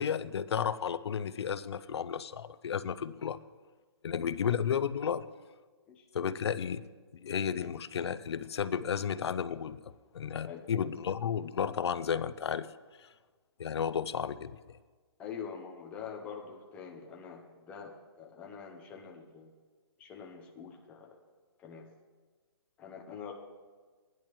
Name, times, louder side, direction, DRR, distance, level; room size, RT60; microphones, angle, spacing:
voice 1, 0.0-3.4 4.0-5.3 6.1-6.8 7.1-9.8 10.1-12.7 13.6-14.6, left 7 dB, 70° left, 15 dB, 0.5 m, -33 dB
voice 2, 15.2-19.5 20.0-21.2 21.6-21.9 22.8-23.3, left 6 dB, 10° left, -1 dB, 0.6 m, -45 dB
17.0 x 10.5 x 3.1 m, 1.4 s
hypercardioid pair, 165°, 14 cm